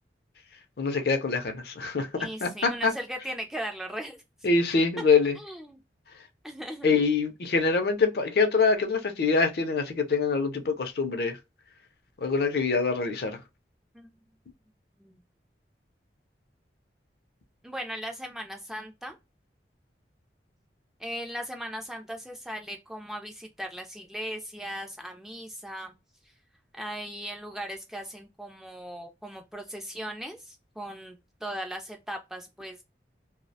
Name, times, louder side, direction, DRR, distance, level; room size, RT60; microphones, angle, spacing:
voice 1, 0.8-2.9 4.4-5.4 6.8-11.4 12.2-13.4, left 4 dB, 60° left, 0.5 m, -25 dB
voice 2, 2.2-4.2 5.4-5.8 6.4-6.9 13.9-14.1 15.0-15.2 17.6-19.2 21.0-25.9 26.7-32.8, equal, ahead, 0.3 m, -38 dB
2.3 x 2.0 x 2.6 m
head